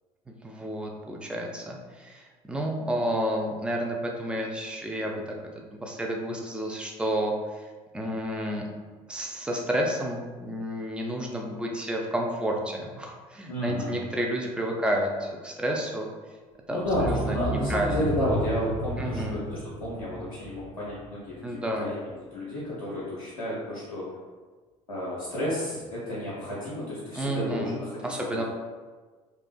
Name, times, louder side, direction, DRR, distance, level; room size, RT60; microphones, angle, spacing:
voice 1, 0.3-5.3 5.7-7.7 7.9-8.7 9.1-16.1 16.7-18.0 19.0-19.4 21.4-21.9 27.2-28.4, right 1 dB, 5° right, 0 dB, 0.4 m, -31 dB
voice 2, 13.5-14.0 16.7-24.1 24.9-28.3, left 1 dB, 85° left, -9 dB, 0.5 m, -31 dB
sound 1, 16.9-21.6 21.9-22.0, right 1 dB, 45° right, 0.6 m, -33 dB
2.4 x 2.3 x 2.3 m, 1.4 s
hypercardioid pair, 60°, 18 cm